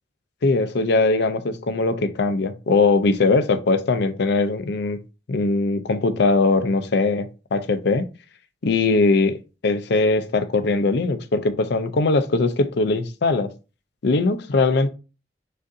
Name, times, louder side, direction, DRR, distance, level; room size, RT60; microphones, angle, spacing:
voice 1, 0.4-5.0 5.3-8.0 8.6-9.4 9.6-13.5 14.0-14.9, left 3 dB, 65° left, 0.5 m, -20 dB
6.2 x 2.6 x 2.6 m
head